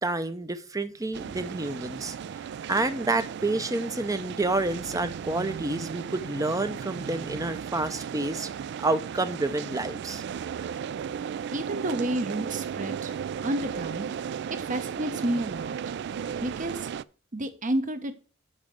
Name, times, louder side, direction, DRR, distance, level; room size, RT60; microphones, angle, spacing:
voice 1, 0.0-2.2 2.7-8.5 8.8-10.2, right 2 dB, 15° right, 11 dB, 0.6 m, -29 dB
sound 1, 1.1-17.0, right 7 dB, 55° right, 0.3 m, -35 dB
voice 2, 11.5-13.1 13.4-14.1 14.7-15.8 16.4-16.9 17.3-18.1, right 1 dB, 40° right, 9 dB, 1.0 m, -30 dB
7.3 x 4.8 x 6.5 m, 0.38 s
head